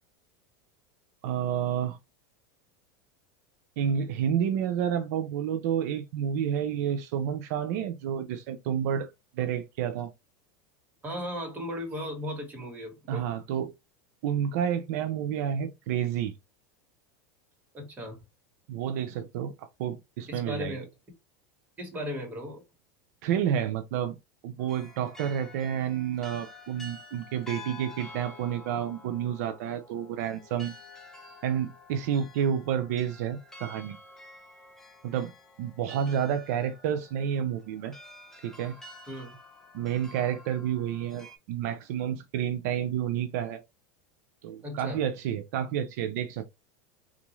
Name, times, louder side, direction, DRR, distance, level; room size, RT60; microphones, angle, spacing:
voice 1, 1.2-2.0 3.8-10.1 13.1-13.7 14.2-16.3 18.7-20.8 23.2-24.2 24.4-30.7 31.4-34.0 35.0-35.3 35.6-37.9 38.4-38.7 39.7-43.6 44.4-46.4, right 9 dB, 65° right, 0.5 m, -30 dB
voice 2, 11.0-13.3 17.7-18.2 20.3-20.9 21.8-22.6 39.1-39.3 44.6-45.0, equal, 15° right, 1.4 m, -36 dB
sound 1, 24.6-41.4, left 2 dB, 5° left, 0.6 m, -49 dB
3.7 x 2.5 x 3.0 m
supercardioid pair, 145°, 10 cm